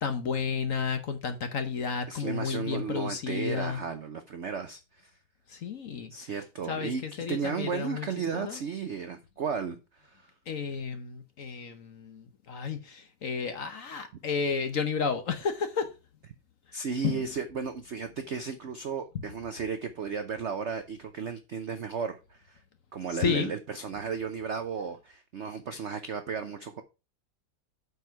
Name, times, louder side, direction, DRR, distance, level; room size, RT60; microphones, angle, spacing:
voice 1, 0.0-3.8 5.5-6.1 6.7-8.1 8.3-8.6 10.5-15.9 17.0-17.2 23.2-23.5, left 6 dB, 50° left, 1.1 m, -32 dB
voice 2, 2.1-5.1 6.1-10.3 16.7-22.6 22.9-26.8, right 6 dB, 65° right, 0.7 m, -34 dB
8.0 x 4.8 x 5.7 m
omnidirectional pair, 2.1 m